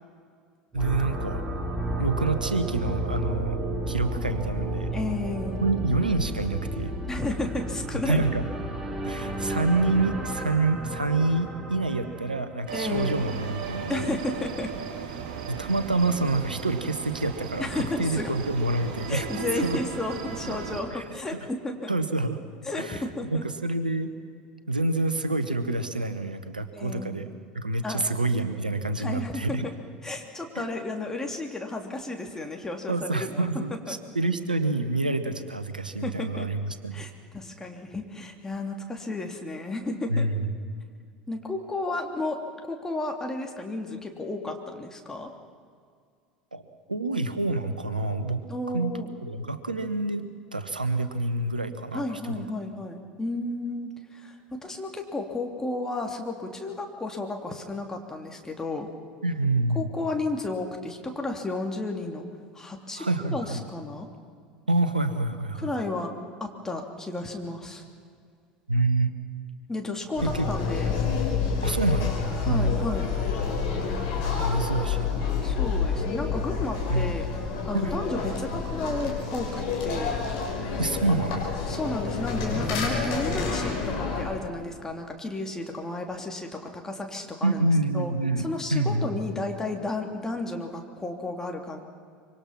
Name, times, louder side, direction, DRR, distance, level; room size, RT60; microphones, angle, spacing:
sound 1, 0.7-12.7, right 1 dB, 15° right, 3.9 m, -32 dB
voice 1, 0.7-1.4 2.0-3.6 3.9-4.9 5.6-6.9 7.9-8.4 9.0-14.1 15.5-19.8 20.5-20.6 20.9-21.0 21.9-22.4 22.8-23.0 23.3-24.1 24.7-27.3 27.5-29.6 30.5-30.8 32.9-37.0 40.1-40.5 46.5-46.6 46.9-48.4 48.7-52.4 59.2-59.9 63.0-63.6 64.7-65.7 68.7-69.1 70.2-70.5 71.6-72.2 72.5-72.7 74.4-75.1 76.9-77.2 77.7-77.9 80.8-81.5 87.4-89.1, right 2 dB, 85° right, 10 dB, 1.3 m, -27 dB
voice 2, 4.9-5.6 7.1-8.2 12.7-13.1 13.9-14.7 17.6-18.3 19.1-21.9 22.6-23.4 26.7-27.2 27.8-28.1 29.0-29.7 30.0-33.5 33.9-34.0 36.0-36.5 36.9-40.3 41.3-45.3 48.5-49.1 51.9-58.9 59.7-62.2 62.5-64.1 65.6-66.1 66.4-67.8 69.7-71.0 72.4-73.1 75.4-77.3 77.7-80.2 81.7-87.6 87.9-88.1 88.4-91.8, left 2 dB, 10° left, 2 dB, 3.2 m, -33 dB
sound 2, 12.7-20.8, right 6 dB, 55° right, 3.5 m, -36 dB
sound 3, 70.2-84.2, left 5 dB, 55° left, 6.1 m, -28 dB
25.5 x 24.0 x 6.0 m, 2.1 s
figure-of-eight pair, 75°, 5 cm